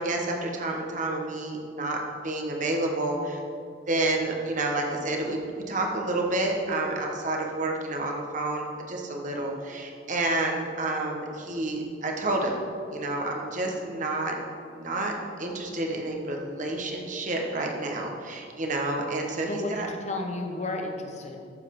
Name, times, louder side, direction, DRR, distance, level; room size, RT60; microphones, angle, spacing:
voice 1, 0.0-3.4 3.9-5.4 5.7-12.6 12.9-14.3 14.7-19.9, right 2 dB, 45° right, 1 dB, 1.3 m, -29 dB
voice 2, 19.5-21.4, left 2 dB, 40° left, 3 dB, 1.1 m, -32 dB
14.0 x 7.3 x 3.8 m, 2.4 s
head